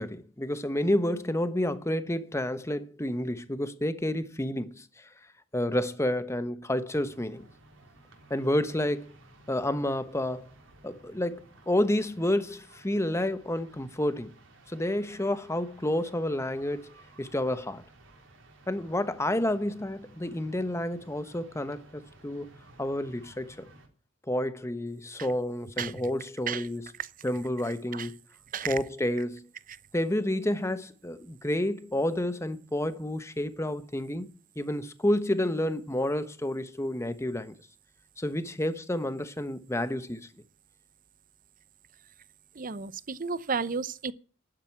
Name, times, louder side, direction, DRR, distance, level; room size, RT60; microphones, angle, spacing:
voice 1, 0.0-5.1 5.5-7.5 8.3-9.2 9.5-10.5 10.8-14.3 14.7-17.8 18.7-22.5 22.8-23.6 24.3-26.8 27.2-28.2 28.7-29.5 29.9-34.3 34.6-37.5 38.2-40.3, left 1 dB, 15° left, 1.1 m, -30 dB
sound 1, 6.9-23.9, right 2 dB, 70° right, 3.6 m, -56 dB
voice 2, 25.8-26.1 26.5-26.7 27.0-27.1 27.9-28.1 28.5-28.8 29.7-29.8 42.5-44.1, right 6 dB, 45° right, 0.7 m, -33 dB
12.0 x 9.2 x 8.6 m
head